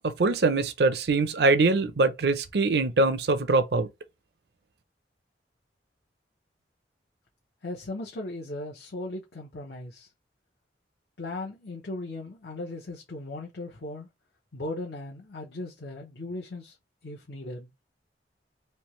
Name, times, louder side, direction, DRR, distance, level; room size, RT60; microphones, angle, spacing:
voice 1, 0.2-3.9, right 3 dB, 65° right, 0.5 m, -23 dB
voice 2, 7.6-10.1 11.2-14.1 14.5-16.8 17.0-17.7, left 2 dB, 70° left, 0.8 m, -37 dB
3.3 x 2.8 x 3.1 m
head